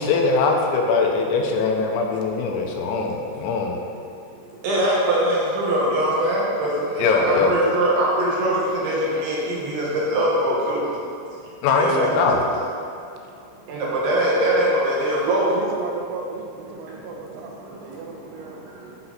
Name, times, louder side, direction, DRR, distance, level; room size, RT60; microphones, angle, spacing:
voice 1, 0.0-3.8 7.0-7.5 11.6-12.4, left 4 dB, 85° left, 1 dB, 3.6 m, -21 dB
voice 2, 4.6-10.8 11.8-12.4 13.7-15.5, right 1 dB, 70° right, -5 dB, 3.5 m, -22 dB
voice 3, 12.0-12.3 15.2-18.9, right 4 dB, 85° right, 1 dB, 3.6 m, -33 dB
11.5 x 5.8 x 4.1 m, 2.4 s
omnidirectional pair, 5.9 m